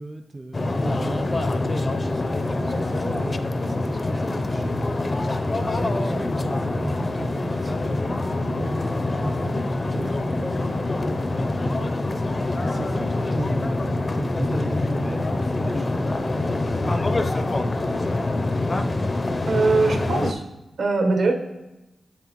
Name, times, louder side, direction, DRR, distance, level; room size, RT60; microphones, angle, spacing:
voice 1, 0.0-5.0 5.4-12.0 12.3-17.5 18.0-18.2, right 2 dB, 30° right, 6 dB, 0.4 m, -36 dB
sound 1, 0.5-20.3, left 2 dB, 40° left, 0.5 m, -25 dB
voice 2, 19.5-20.4 20.8-21.3, right 3 dB, 75° right, 3 dB, 1.0 m, -21 dB
7.9 x 7.5 x 3.0 m, 1.0 s
cardioid pair, 55°, 0 cm